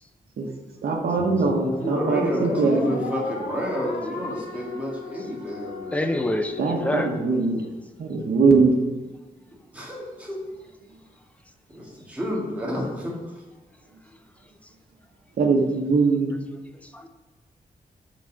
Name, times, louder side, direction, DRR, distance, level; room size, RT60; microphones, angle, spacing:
voice 1, 0.8-3.0 6.6-7.6 8.0-8.7 15.4-16.3, right 4 dB, 80° right, 0 dB, 1.3 m, -21 dB
sound 1, 1.2-7.7, left 3 dB, 80° left, 1.5 m, -36 dB
voice 2, 1.8-6.0 9.7-10.4 11.7-13.1, equal, 10° right, -4 dB, 1.9 m, -29 dB
voice 3, 5.9-7.1 16.9-17.1, left 1 dB, 10° left, 7 dB, 0.6 m, -26 dB
6.2 x 5.3 x 6.8 m, 1.2 s
wide cardioid pair, 160°, 16 cm